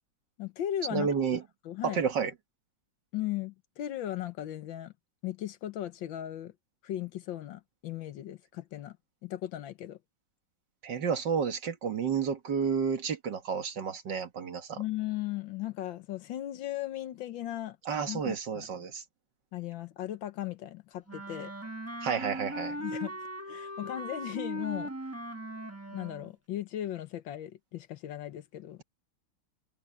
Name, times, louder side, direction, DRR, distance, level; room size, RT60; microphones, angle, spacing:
voice 1, 0.4-1.1 1.6-2.0 3.1-4.9 5.2-6.5 6.8-9.0 9.2-10.0 14.8-17.8 18.1-18.7 19.5-21.5 22.8-23.2 23.5-24.9 25.9-28.8, left 13 dB, 75° left, 1.7 m, -37 dB
voice 2, 0.9-1.4 1.8-2.3 10.8-14.8 17.9-19.0 22.0-22.8, right 6 dB, 65° right, 2.2 m, -31 dB
Wind instrument woodwind instrument, 21.1-26.3, right 1 dB, 10° right, 1.0 m, -39 dB
omnidirectional pair, 2.1 m